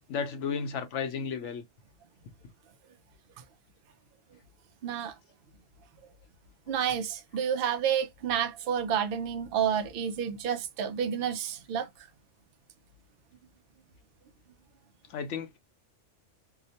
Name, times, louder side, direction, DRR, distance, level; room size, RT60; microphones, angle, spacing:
voice 1, 0.1-1.6 15.1-15.6, left 6 dB, 75° left, 1.0 m, -33 dB
voice 2, 4.8-5.1 6.7-11.9, right 8 dB, 60° right, 0.6 m, -30 dB
2.8 x 2.1 x 2.7 m
omnidirectional pair, 1.2 m